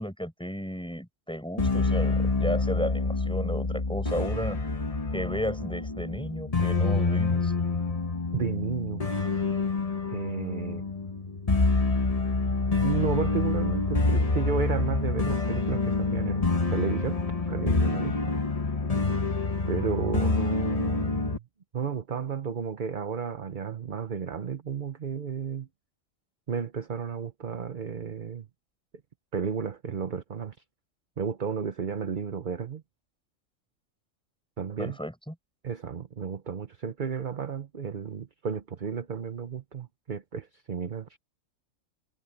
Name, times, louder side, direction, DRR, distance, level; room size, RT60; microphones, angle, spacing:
voice 1, 0.0-4.6 5.1-7.5 34.8-35.3, equal, 5° left, 6.4 m, -33 dB
sound 1, 1.6-21.4, left 3 dB, 30° left, 1.3 m, -27 dB
voice 2, 8.3-9.0 10.1-10.8 12.8-16.4 16.7-18.2 19.7-21.4 21.7-25.7 26.5-28.5 29.3-30.6 31.2-32.8 34.6-35.0 35.6-41.1, right 6 dB, 40° right, 0.9 m, -33 dB
omnidirectional pair, 1.4 m